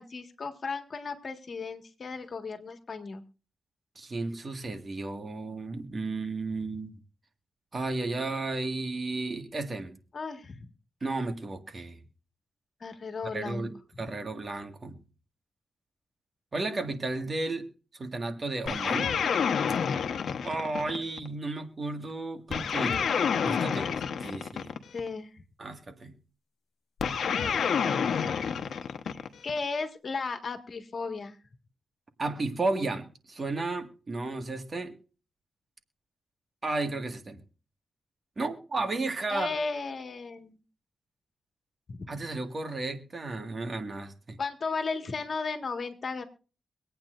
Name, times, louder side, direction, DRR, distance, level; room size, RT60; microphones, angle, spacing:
voice 1, 0.0-3.2 10.1-10.7 12.8-13.7 24.9-25.4 29.1-31.4 39.3-40.6 41.9-42.2 44.4-46.2, left 4 dB, 55° left, 6 dB, 1.7 m, -35 dB
voice 2, 4.0-7.0 7.7-10.0 11.0-12.0 13.3-15.0 16.5-17.7 18.0-19.2 20.4-23.0 23.4-24.7 25.6-26.2 32.2-34.9 36.6-37.4 38.4-39.5 42.1-44.4, right 3 dB, 40° right, 6 dB, 1.8 m, -33 dB
sound 1, 18.7-21.3 22.5-25.1 27.0-29.6, left 6 dB, 80° left, 1.0 m, -29 dB
24.5 x 8.9 x 2.5 m, 0.37 s
cardioid pair, 80°, 0 cm